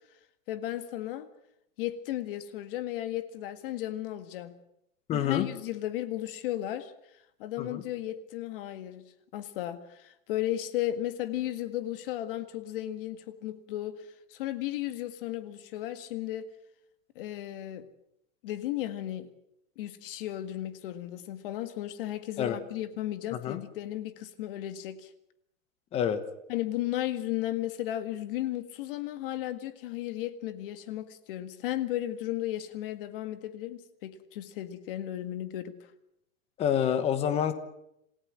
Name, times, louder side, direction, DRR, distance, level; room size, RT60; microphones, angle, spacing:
voice 1, 0.5-1.3 1.8-4.5 5.1-6.9 7.4-9.0 9.3-14.0 14.3-16.5 17.2-17.8 18.4-19.3 19.8-25.1 26.5-35.7, left 13 dB, 45° left, 11 dB, 1.8 m, -34 dB
voice 2, 5.1-5.5 7.6-7.8 22.4-22.6 23.3-23.6 25.9-26.2 36.6-37.5, left 9 dB, 15° left, 11 dB, 1.1 m, -27 dB
27.5 x 16.5 x 7.6 m, 0.81 s
supercardioid pair, 165°, 40 cm